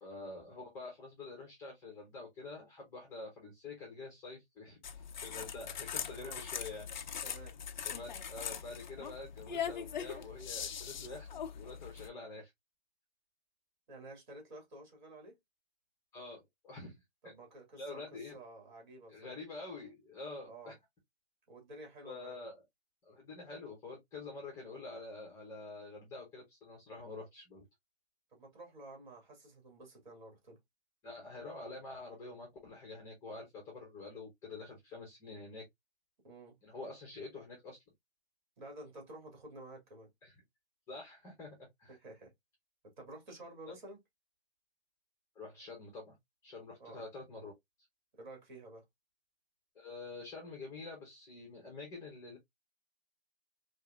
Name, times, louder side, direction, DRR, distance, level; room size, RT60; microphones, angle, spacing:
voice 1, 0.0-6.9 7.8-11.3 11.5-12.5 16.1-16.9 17.2-17.3 17.8-18.3 19.1-20.7 22.0-22.6 23.0-27.6 31.0-35.7 36.6-37.8 40.2-40.3 40.9-42.0 43.7-43.8 45.3-46.2 46.4-47.5 49.7-52.4, left 3 dB, 10° left, 1.0 m, -47 dB
sound 1, 4.8-12.1, left 7 dB, 45° left, 0.6 m, -41 dB
voice 2, 7.2-7.6 13.9-15.4 17.2-19.3 20.5-20.8 21.5-22.3 28.3-30.6 36.2-36.6 38.6-40.1 41.9-42.3 42.8-44.0 46.8-47.0 48.1-48.8, right 2 dB, 45° right, 2.6 m, -51 dB
4.8 x 2.6 x 2.3 m
hypercardioid pair, 155°, 33 cm